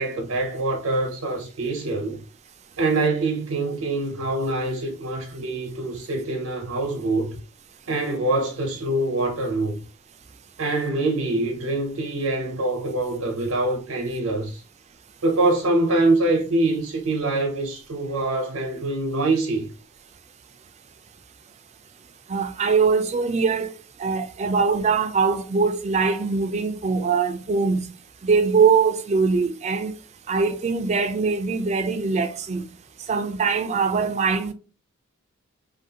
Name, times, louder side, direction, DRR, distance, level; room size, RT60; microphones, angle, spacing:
voice 1, 0.0-2.2 2.8-7.4 7.9-9.8 10.6-14.6 15.2-19.7, right 2 dB, 85° right, 0.8 m, -24 dB
voice 2, 22.3-23.7 24.0-27.9 28.2-29.9 30.3-32.6 33.1-34.5, right 5 dB, 30° right, 0.3 m, -22 dB
2.7 x 2.5 x 2.7 m
head